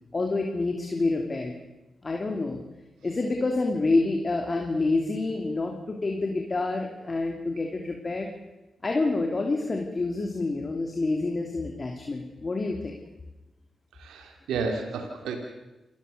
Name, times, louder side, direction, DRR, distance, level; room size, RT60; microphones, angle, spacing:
voice 1, 0.1-1.6 2.0-2.6 3.0-8.3 8.8-12.9, left 3 dB, 45° left, 2 dB, 3.0 m, -27 dB
voice 2, 14.0-15.4, right 4 dB, 85° right, 4 dB, 2.5 m, -31 dB
27.5 x 14.5 x 6.8 m, 1.0 s
supercardioid pair, 40°, 0 cm